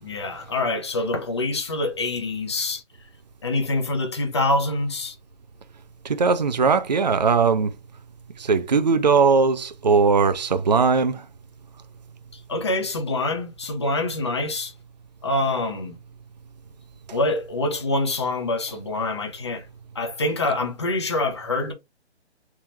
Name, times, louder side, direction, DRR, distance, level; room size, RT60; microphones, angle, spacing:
voice 1, 0.0-2.8 3.4-5.1 12.3-14.7 15.2-16.0 17.1-19.7 19.9-21.7, left 2 dB, 25° left, 0.6 m, -25 dB
voice 2, 6.0-7.7 8.4-11.3, right 5 dB, 40° right, 0.4 m, -19 dB
3.5 x 2.8 x 3.0 m
hypercardioid pair, 165°, 34 cm